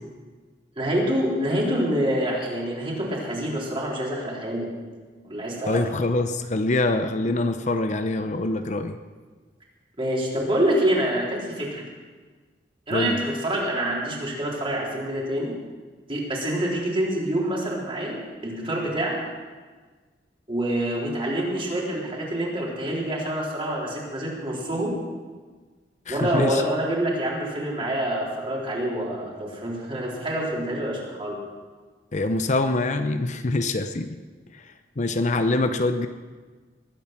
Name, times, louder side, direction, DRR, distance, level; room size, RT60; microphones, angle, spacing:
voice 1, 0.8-4.7 5.2-5.8 10.0-11.8 12.9-15.6 16.1-18.2 18.4-19.2 20.5-25.0 26.1-31.4, right 1 dB, 30° right, -4 dB, 4.0 m, -26 dB
voice 2, 5.7-9.0 12.9-13.2 26.1-26.6 32.1-34.2 34.5-34.6 35.0-36.1, left 2 dB, 45° left, 8 dB, 0.7 m, -24 dB
21.0 x 9.3 x 6.0 m, 1.4 s
head